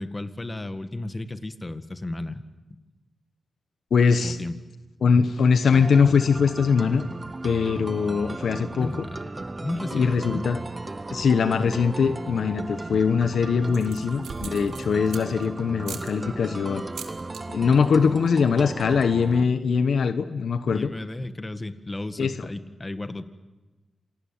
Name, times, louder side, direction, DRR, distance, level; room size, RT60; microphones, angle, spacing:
voice 1, 0.0-2.4 4.2-4.6 8.8-10.4 20.7-23.3, left 2 dB, 30° left, 10 dB, 1.8 m, -34 dB
voice 2, 3.9-4.4 5.0-7.1 7.4-9.1 9.9-10.6 11.1-16.8 17.5-20.9 22.2-22.5, left 5 dB, 75° left, 10 dB, 1.1 m, -22 dB
sound 1, 5.7-19.4, right 2 dB, 30° right, 0.9 m, -36 dB
sound 2, 12.7-13.2 13.7-15.5 15.8-16.1 16.8-17.4 17.7-18.0 18.3-18.4 18.6-19.0, right 7 dB, 90° right, 1.9 m, -41 dB
27.5 x 19.0 x 9.0 m, 1.1 s
cardioid pair, 50°, 0 cm